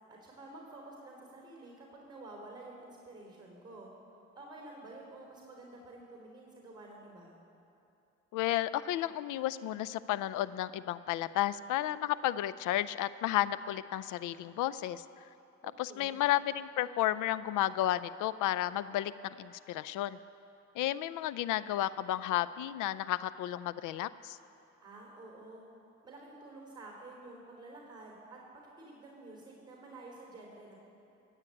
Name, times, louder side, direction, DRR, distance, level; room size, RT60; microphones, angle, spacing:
voice 1, 0.1-3.9 4.4-7.3 15.6-16.2 24.8-25.7 26.0-30.7, right 2 dB, 15° right, -1 dB, 3.7 m, -50 dB
voice 2, 8.3-15.0 15.8-20.2 20.8-24.4, left 13 dB, 85° left, 16 dB, 0.5 m, -32 dB
15.0 x 8.2 x 8.5 m, 2.7 s
cardioid pair, 90°, 30 cm